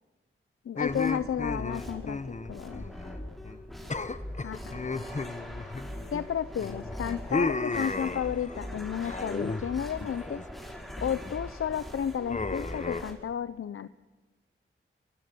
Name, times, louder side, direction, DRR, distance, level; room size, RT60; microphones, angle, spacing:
voice 1, 0.7-2.9 4.4-4.7 6.1-10.4 11.0-13.9, left 8 dB, 85° left, 13 dB, 0.7 m, -32 dB
sound 1, 0.8-3.2 3.4-3.6 3.9-6.2 6.6-8.6 9.0-9.7 10.0-10.5 10.9-11.3 12.3-13.0, left 3 dB, 35° left, 1.2 m, -34 dB
sound 2, 0.8-13.1, left 1 dB, ahead, 4.8 m, -41 dB
26.0 x 23.5 x 6.9 m, 1.2 s
wide cardioid pair, 75°, 21 cm